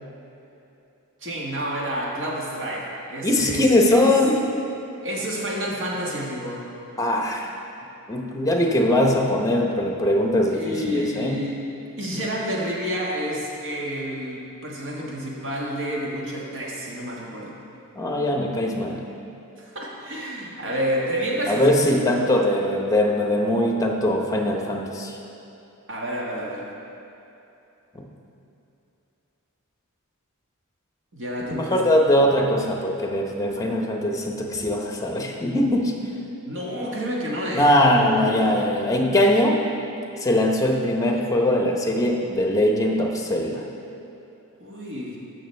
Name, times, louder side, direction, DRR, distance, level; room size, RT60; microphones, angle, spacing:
voice 1, 1.2-4.1 5.0-6.6 10.5-11.6 12.0-17.6 19.6-22.3 25.9-26.7 31.1-31.8 32.1-32.6 36.4-38.6 44.6-45.2, equal, 55° right, -4 dB, 1.6 m, -29 dB
voice 2, 3.2-4.4 7.0-7.5 8.1-11.3 18.0-19.0 21.5-25.2 31.6-36.0 37.5-39.6 40.2-43.6, left 1 dB, 15° left, 1 dB, 0.8 m, -21 dB
14.0 x 6.2 x 3.3 m, 2.8 s
head